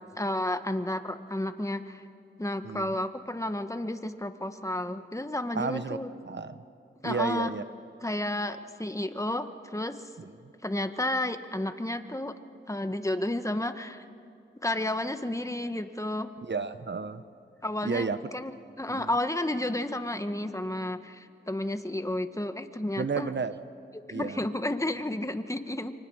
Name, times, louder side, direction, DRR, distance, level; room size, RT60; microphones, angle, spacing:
voice 1, 0.2-2.0 2.4-6.1 7.0-7.5 8.0-10.0 10.6-12.3 12.7-14.0 14.6-16.3 17.6-18.5 18.8-23.3 24.1-25.9, left 1 dB, 15° left, 8 dB, 1.5 m, -31 dB
voice 2, 5.5-6.0 6.2-6.6 7.0-7.6 10.2-10.3 16.4-17.2 17.8-18.2 18.9-19.1 23.0-23.5 24.1-24.4, right 5 dB, 65° right, 11 dB, 1.2 m, -32 dB
29.0 x 24.5 x 6.5 m, 2.6 s
cardioid pair, 45°, 20 cm